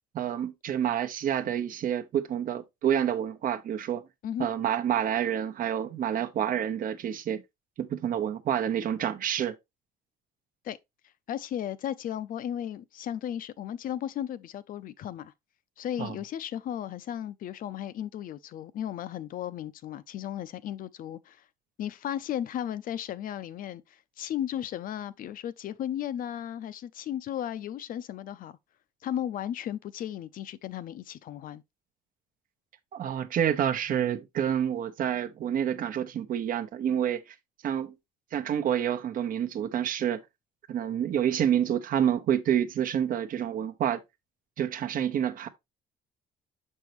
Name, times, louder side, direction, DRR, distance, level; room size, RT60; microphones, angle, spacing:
voice 1, 0.1-4.0 4.4-7.4 7.8-9.5 16.0-16.2 32.9-37.2 37.6-37.9 38.3-40.2 40.7-44.0 44.6-45.5, right 9 dB, 55° right, 0.9 m, -28 dB
voice 2, 11.3-15.3 15.8-21.4 21.8-28.6 29.0-31.6, left 10 dB, 55° left, 0.5 m, -35 dB
6.8 x 5.4 x 3.0 m
cardioid pair, 110°, 17 cm